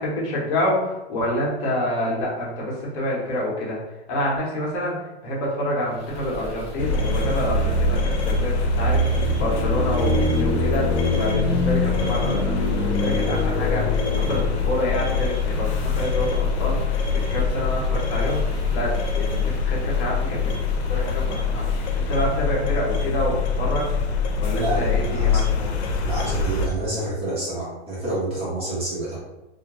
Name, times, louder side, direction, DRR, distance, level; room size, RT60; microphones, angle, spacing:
voice 1, 0.0-3.8 4.1-4.9 5.2-9.0 9.4-10.9 11.2-13.8 14.1-16.9 17.3-23.9 24.4-25.7, left 1 dB, 35° left, -5 dB, 0.9 m, -27 dB
sound 1, 5.9-22.6, right 1 dB, 20° left, 0.5 m, -38 dB
sound 2, 6.8-26.7, left 3 dB, 85° left, 0.6 m, -23 dB
voice 2, 24.4-25.4 26.0-29.2, right 1 dB, 20° right, -7 dB, 0.8 m, -28 dB
2.3 x 2.1 x 2.9 m, 0.99 s
hypercardioid pair, 135°, 33 cm